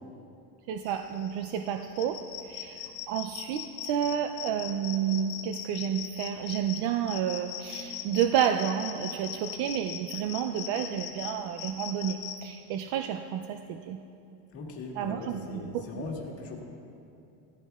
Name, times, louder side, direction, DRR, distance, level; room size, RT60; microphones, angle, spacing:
voice 1, 0.7-2.2 2.5-2.8 3.1-14.0 15.0-16.0, right 9 dB, 55° right, 5 dB, 0.5 m, -30 dB
sound 1, 0.9-12.4, left 10 dB, 70° left, 1.4 m, -40 dB
voice 2, 14.5-16.6, left 3 dB, 30° left, -1 dB, 1.6 m, -39 dB
16.5 x 14.0 x 2.4 m, 2.7 s
cardioid pair, 160°, 46 cm